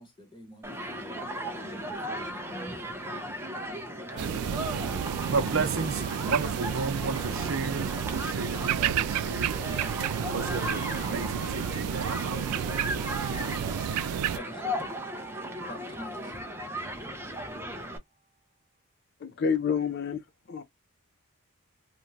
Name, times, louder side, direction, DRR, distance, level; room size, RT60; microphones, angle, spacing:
voice 1, 0.0-3.0 4.1-5.7 14.3-14.8 15.7-16.3, equal, 20° left, 1.0 m, -46 dB
Human group actions, 0.6-18.0, equal, 10° right, 0.4 m, -37 dB
Alarm, 3.9-8.1 8.6-13.1 13.6-17.4, right 4 dB, 30° right, 0.8 m, -48 dB
sound 1, 4.2-14.4, right 9 dB, 90° right, 0.3 m, -31 dB
voice 2, 5.3-9.7 10.3-12.9, right 4 dB, 60° right, 0.7 m, -33 dB
voice 3, 19.2-20.2 20.5-20.6, left 6 dB, 45° left, 0.4 m, -28 dB
3.0 x 2.3 x 2.6 m
head